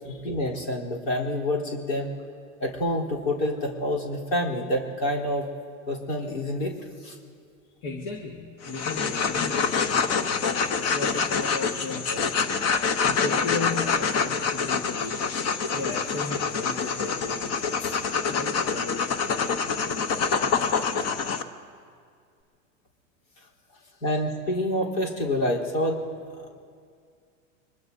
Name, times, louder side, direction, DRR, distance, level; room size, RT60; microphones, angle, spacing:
voice 1, 0.0-2.1 2.6-5.5 5.9-7.2 17.8-17.9 24.0-26.0 26.4-26.5, left 1 dB, 80° left, -3 dB, 3.7 m, -27 dB
voice 2, 7.6-12.5 13.0-15.4 15.7-17.5 18.3-20.3 23.7-24.0, left 3 dB, 65° left, -1 dB, 1.7 m, -36 dB
sound 1, 8.6-21.4, left 5 dB, 40° left, 0.9 m, -26 dB
24.0 x 21.5 x 2.7 m, 2.2 s
supercardioid pair, 110°, 39 cm